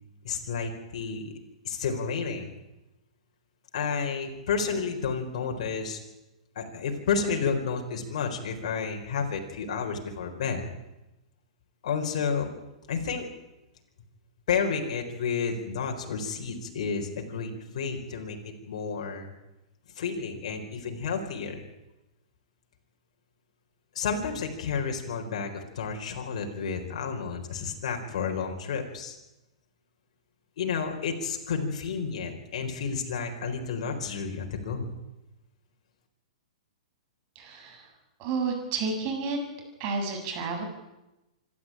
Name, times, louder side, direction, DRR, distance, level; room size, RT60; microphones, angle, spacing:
voice 1, 0.2-1.3 1.6-2.5 3.7-6.0 6.6-10.7 11.8-12.5 12.9-13.3 14.5-18.4 18.7-19.3 20.0-21.6 23.9-29.2 30.6-34.9, left 5 dB, 65° left, 3 dB, 4.4 m, -31 dB
voice 2, 37.3-37.9 38.2-39.4 39.8-40.6, right 4 dB, 40° right, 3 dB, 7.6 m, -31 dB
26.0 x 12.5 x 9.0 m, 0.98 s
hypercardioid pair, 125°, 4 cm